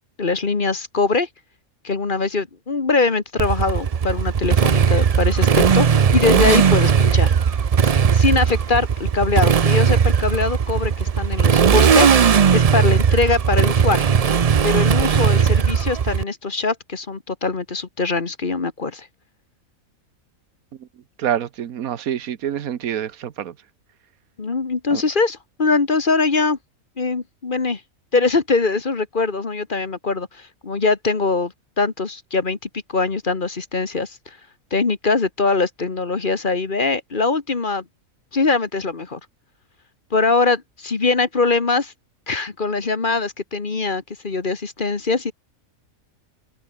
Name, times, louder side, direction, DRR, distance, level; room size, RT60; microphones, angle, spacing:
voice 1, 0.2-1.3 1.8-7.3 7.8-14.1 14.6-19.1 24.4-26.6 27.0-27.8 28.1-34.2 34.7-37.8 38.3-39.2 40.1-41.9 42.3-45.3, left 3 dB, 40° left, 1.6 m, -22 dB
Motorcycle, 3.4-16.2, right 7 dB, 45° right, 0.4 m, -17 dB
voice 2, 21.2-23.5 24.9-25.0, right 10 dB, 90° right, 1.4 m, -26 dB
omnidirectional pair, 1.4 m